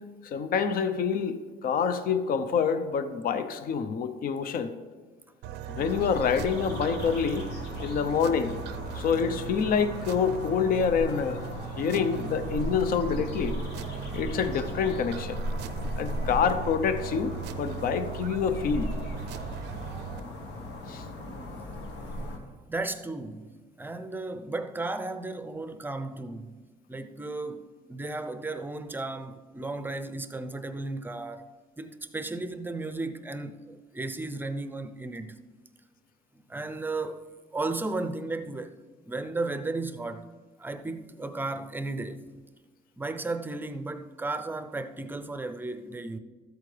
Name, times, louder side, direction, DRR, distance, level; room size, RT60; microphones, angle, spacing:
voice 1, 0.2-4.7 5.7-7.5 7.8-8.5 8.9-11.5 11.8-13.6 14.1-15.4 15.9-18.9 20.9-21.0, left 6 dB, 60° left, 0.7 m, -27 dB
sound 1, 5.4-20.2, right 11 dB, 90° right, 0.5 m, -39 dB
sound 2, 5.8-22.4, left 1 dB, 85° left, 1.5 m, -37 dB
voice 2, 22.7-23.5 23.8-26.6 26.9-31.5 31.8-35.4 36.5-38.8 39.0-40.3 40.6-42.2 43.0-46.2, right 2 dB, 10° right, 0.5 m, -34 dB
13.5 x 8.1 x 3.3 m
cardioid pair, 110°, 17 cm